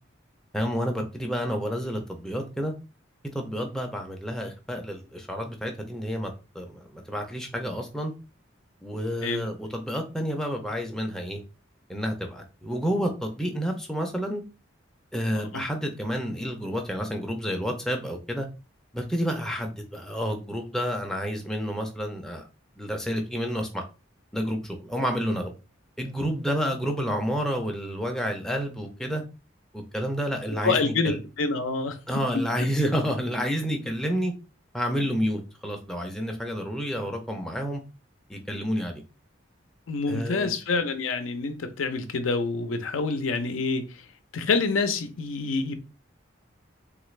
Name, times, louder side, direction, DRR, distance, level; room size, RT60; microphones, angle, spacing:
voice 1, 0.5-2.7 3.3-8.1 8.8-11.4 11.9-14.4 15.1-18.5 18.9-22.4 22.8-23.8 24.3-25.5 26.0-29.2 29.7-31.2 32.1-34.3 34.7-37.8 38.3-39.0 40.1-40.5, equal, 5° left, 0.4 m, -29 dB
voice 2, 30.6-32.0 39.9-43.8 44.3-45.7, left 4 dB, 90° left, 0.5 m, -27 dB
3.3 x 2.4 x 3.1 m
head